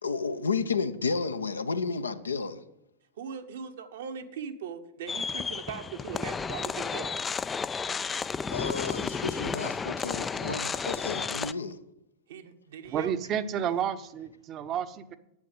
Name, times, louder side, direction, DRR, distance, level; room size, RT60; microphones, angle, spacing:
voice 1, 0.0-2.6 8.5-11.8, left 4 dB, 75° left, 0.7 m, -32 dB
voice 2, 3.2-7.2 12.3-13.1, right 7 dB, 60° right, 1.1 m, -40 dB
sound 1, 5.1-11.5, left 5 dB, 15° left, 0.3 m, -32 dB
voice 3, 12.8-15.2, right 8 dB, 35° right, 0.8 m, -31 dB
9.7 x 8.4 x 8.0 m
figure-of-eight pair, 90°, 0 cm